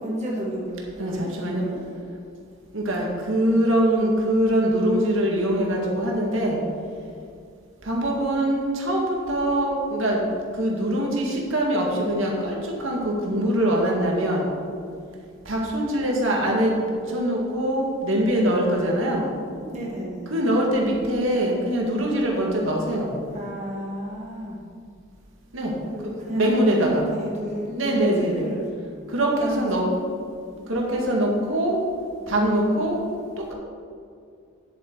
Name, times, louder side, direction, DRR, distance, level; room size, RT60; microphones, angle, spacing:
voice 1, 0.0-1.8 19.6-20.3 23.3-24.6 25.9-28.7 29.3-29.8, equal, 35° right, -4 dB, 1.6 m, -32 dB
voice 2, 1.0-1.6 2.7-6.6 7.8-10.3 10.6-14.5 15.5-16.7 17.1-19.3 20.3-23.1 25.5-25.7 26.0-27.1 27.6-28.5 29.1-29.8 30.7-31.8 32.3-33.0, right 1 dB, 85° right, -1 dB, 1.9 m, -23 dB
9.8 x 7.7 x 4.6 m, 2.3 s
head